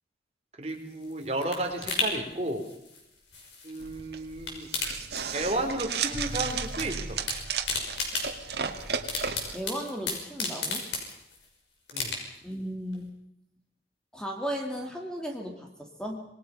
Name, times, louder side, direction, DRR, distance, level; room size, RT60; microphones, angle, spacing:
voice 1, 0.6-2.6 3.6-4.7 5.3-7.2 11.9-12.1, right 1 dB, 35° right, 4 dB, 3.2 m, -32 dB
sound 1, 0.7-4.0 4.3-5.8 6.0-6.9 7.1-11.5 11.9-12.5 12.9-13.0, left 3 dB, 90° left, 5.9 m, -34 dB
sound 2, 3.8-9.6, right 6 dB, 70° right, 2.1 m, -34 dB
voice 2, 9.5-10.8 12.4-13.1 14.1-16.2, equal, 5° left, 1 dB, 2.5 m, -35 dB
27.0 x 20.0 x 5.6 m, 0.80 s
head